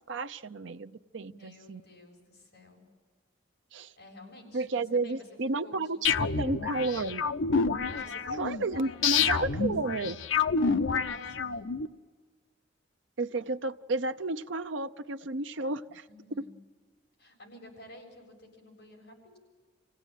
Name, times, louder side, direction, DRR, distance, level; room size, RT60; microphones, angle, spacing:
voice 1, 0.0-1.8 3.7-3.9 4.5-6.1 6.4-7.2 8.4-10.2 13.2-16.1 16.4-16.5, right 3 dB, 65° right, 9 dB, 0.7 m, -32 dB
voice 2, 1.3-2.8 4.0-5.3 5.6-7.0 7.9-9.7 10.6-11.7 16.1-16.5 17.2-19.4, left 1 dB, 55° left, 0 dB, 7.4 m, -52 dB
sound 1, 6.0-11.9, left 5 dB, 80° left, 0.8 m, -28 dB
26.0 x 17.0 x 9.2 m, 1.5 s
head